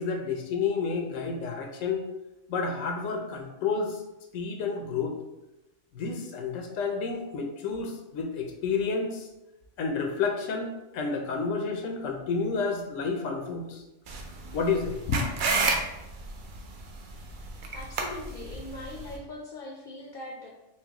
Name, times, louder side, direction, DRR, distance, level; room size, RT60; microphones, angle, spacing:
voice 1, 0.0-2.0 2.5-4.0 4.3-5.1 5.9-9.3 9.8-13.8 14.5-15.2, left 5 dB, 90° left, 3 dB, 1.0 m, -30 dB
sound 1, 14.1-19.2, right 3 dB, 60° right, 0.5 m, -31 dB
voice 2, 17.7-20.5, left 2 dB, 60° left, -1 dB, 0.5 m, -41 dB
4.5 x 2.1 x 2.9 m, 0.95 s
omnidirectional pair, 1.3 m